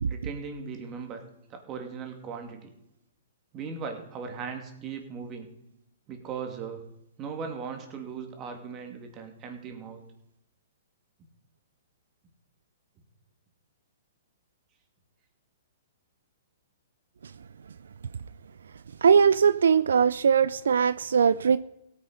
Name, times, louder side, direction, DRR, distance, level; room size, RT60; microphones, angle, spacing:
voice 1, 0.1-1.2 1.5-2.7 3.5-5.5 6.1-6.8 7.2-10.0, right 5 dB, 25° right, 2.5 m, -38 dB
voice 2, 19.0-21.6, right 6 dB, 85° right, 0.4 m, -20 dB
16.5 x 9.5 x 5.1 m
hypercardioid pair, 145°, 0 cm